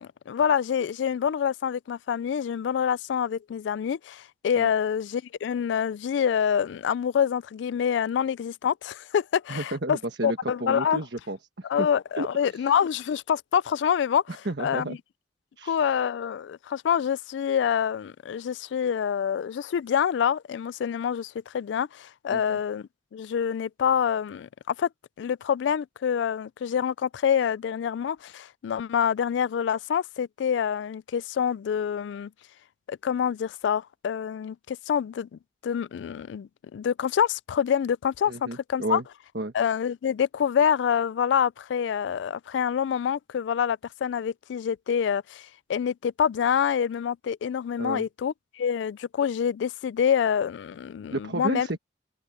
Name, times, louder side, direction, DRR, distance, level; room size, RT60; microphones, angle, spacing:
voice 1, 0.0-10.0 10.2-11.0 11.7-14.2 14.6-15.0 15.6-24.9 25.2-32.3 32.9-35.3 35.6-39.0 39.5-51.7, left 8 dB, 80° left, 0.3 m, -26 dB
voice 2, 9.5-11.9 12.2-12.3 12.5-12.7 14.4-15.0 15.6-15.8 22.3-22.6 38.3-39.0 39.3-39.5 47.8-48.1 51.1-51.8, right 2 dB, 65° right, 1.3 m, -32 dB
head